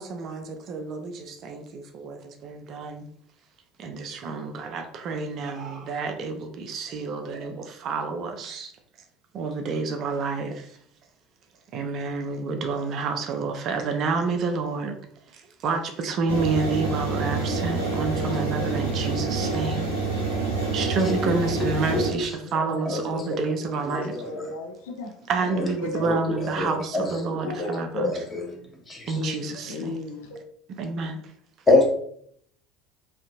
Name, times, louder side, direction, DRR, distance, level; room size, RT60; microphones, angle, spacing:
voice 1, 0.0-3.1 3.8-8.7 9.3-10.8 11.7-15.0 15.3-19.9 20.7-24.3 25.3-28.2 29.1-30.0 30.7-31.2, right 4 dB, 45° right, 0.4 m, -29 dB
sound 1, 16.3-22.1, right 3 dB, 85° right, 0.7 m, -27 dB
voice 2, 18.2-18.6 21.2-21.3 22.9-23.4 23.8-23.9 24.2-24.3 26.0-26.1 26.4-27.0 27.4-27.5 27.9-28.6 28.9-29.3 31.7-31.9, left 2 dB, 20° left, 0.9 m, -25 dB
voice 3, 23.9-25.1 25.5-26.1 26.6-26.8 27.4-27.9 29.1-30.4, left 2 dB, 65° left, 0.4 m, -35 dB
2.6 x 2.4 x 2.3 m
figure-of-eight pair, 65°, 0 cm